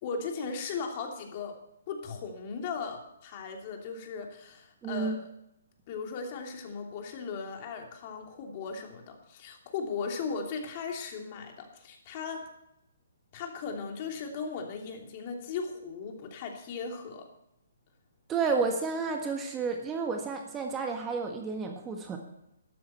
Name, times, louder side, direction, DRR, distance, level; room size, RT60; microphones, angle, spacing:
voice 1, 0.0-1.5 1.9-5.3 5.9-12.5 13.3-17.3, left 5 dB, 40° left, 2 dB, 2.9 m, -37 dB
voice 2, 4.8-5.2 18.3-22.2, right 4 dB, 15° right, 3 dB, 1.5 m, -31 dB
13.0 x 12.0 x 4.4 m, 0.82 s
figure-of-eight pair, 135°, 0 cm